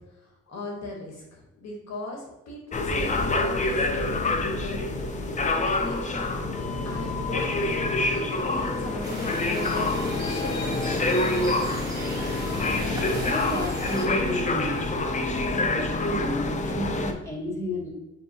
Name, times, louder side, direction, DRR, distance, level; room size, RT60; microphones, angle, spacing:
voice 1, 0.2-4.8 5.5-6.3 6.8-7.8 8.1-11.5, left 2 dB, 60° left, 0 dB, 0.9 m, -38 dB
sound 1, 2.7-17.1, left 2 dB, 25° left, 0.4 m, -27 dB
sound 2, 3.6-15.0, left 1 dB, 25° right, 1.5 m, -41 dB
sound 3, 9.0-14.1, right 1 dB, 10° right, 1.2 m, -38 dB
voice 2, 13.2-14.9 15.5-17.9, left 1 dB, 10° left, -3 dB, 1.3 m, -32 dB
6.1 x 2.6 x 2.6 m, 0.95 s
cardioid pair, 90°, 30 cm